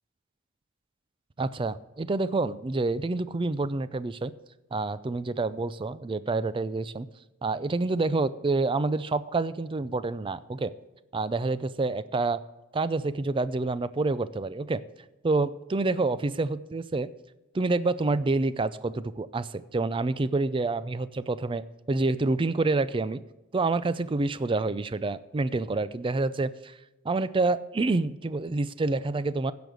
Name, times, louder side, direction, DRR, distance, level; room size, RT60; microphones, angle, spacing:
voice 1, 1.4-4.3 4.7-7.1 7.4-10.7 11.1-12.4 12.7-14.8 15.2-17.1 17.5-23.2 23.5-26.8 27.0-29.5, right 3 dB, 25° right, 15 dB, 0.4 m, -28 dB
15.5 x 5.2 x 6.2 m, 1.1 s
head